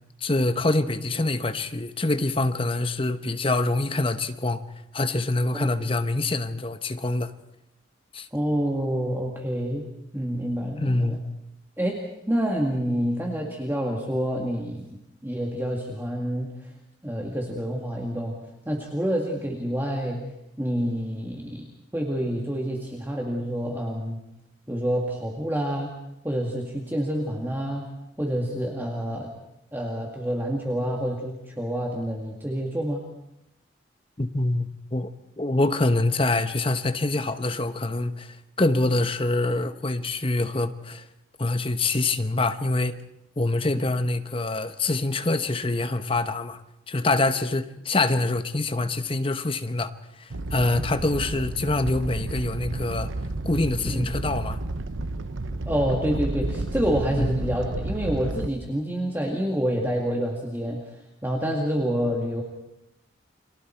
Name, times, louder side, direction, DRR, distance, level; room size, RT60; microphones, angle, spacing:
voice 1, 0.2-4.6 4.9-7.3 8.1-8.3 10.8-11.2 34.2-41.0 41.4-43.0 43.4-46.6 46.9-49.9 50.2-53.1 53.4-54.6 57.2-57.4, left 2 dB, 30° left, 1.0 m, -25 dB
voice 2, 8.3-9.9 10.1-11.2 11.8-12.0 12.3-14.9 15.2-16.7 17.0-18.4 18.7-20.2 20.6-21.6 21.9-24.2 24.7-25.9 26.2-27.9 28.2-29.3 29.7-33.0 53.8-54.0 55.7-62.4, equal, 10° right, 2.2 m, -27 dB
Animal, 50.3-58.5, right 2 dB, 85° right, 0.9 m, -31 dB
30.0 x 23.5 x 4.6 m
head